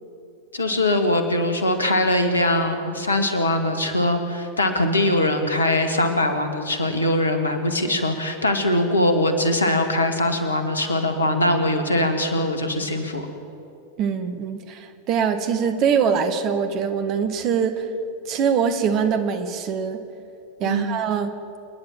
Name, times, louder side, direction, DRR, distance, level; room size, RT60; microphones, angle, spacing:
voice 1, 0.5-13.2 20.6-21.0, left 1 dB, 75° left, 6 dB, 2.1 m, -22 dB
voice 2, 14.0-17.9 18.3-20.0 20.6-21.3, right 7 dB, 40° right, 8 dB, 1.7 m, -23 dB
27.5 x 10.5 x 9.0 m, 2.7 s
figure-of-eight pair, 90°, 0 cm